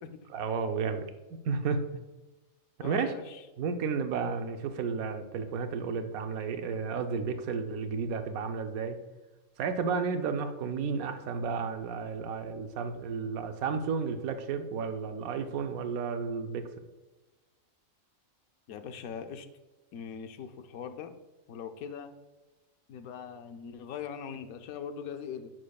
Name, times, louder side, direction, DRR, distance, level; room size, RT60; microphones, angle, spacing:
voice 1, 0.3-1.0 1.4-1.8 2.8-3.1 3.6-9.0 9.6-16.7, right 5 dB, 90° right, 7 dB, 1.1 m, -32 dB
voice 2, 2.8-3.4 18.7-19.5 19.9-21.1 21.5-22.1 22.9-25.5, left 7 dB, 90° left, 8 dB, 1.1 m, -41 dB
9.8 x 6.2 x 2.3 m, 1.1 s
omnidirectional pair, 1.4 m